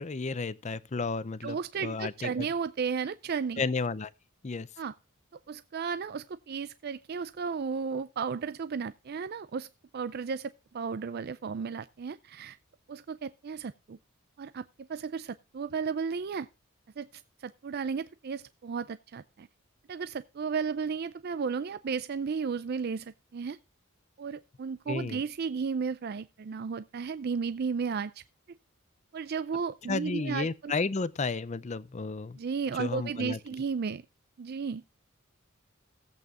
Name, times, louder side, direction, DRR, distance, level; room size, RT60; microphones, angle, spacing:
voice 1, 0.0-1.6 1.8-2.5 3.6-4.1 4.4-4.7 24.9-25.2 29.9-32.4 32.8-33.4, left 4 dB, 35° left, 0.5 m, -32 dB
voice 2, 1.4-3.6 4.8-4.9 5.5-9.7 9.9-12.6 12.9-14.0 14.4-16.5 17.0-19.5 19.9-23.6 24.2-28.2 29.1-30.7 32.4-34.0 34.4-34.8, right 5 dB, 50° right, 0.4 m, -34 dB
16.5 x 8.3 x 2.5 m
head